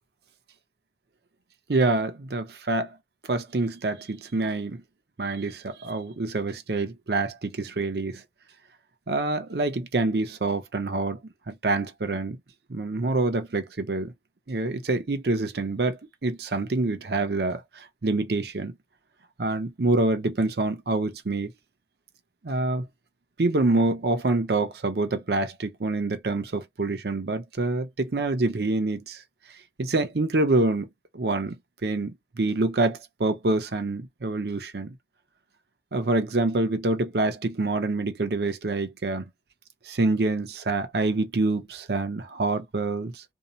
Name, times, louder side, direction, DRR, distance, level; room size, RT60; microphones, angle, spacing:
voice 1, 1.7-2.9 3.3-4.8 5.2-8.2 9.1-11.2 11.5-12.4 12.7-14.1 14.5-18.7 19.4-21.5 22.4-22.8 23.4-29.2 29.8-30.9 31.1-31.5 31.8-34.9 35.9-39.2 39.9-43.2, right 2 dB, 65° right, 0.7 m, -26 dB
2.7 x 2.0 x 2.7 m
head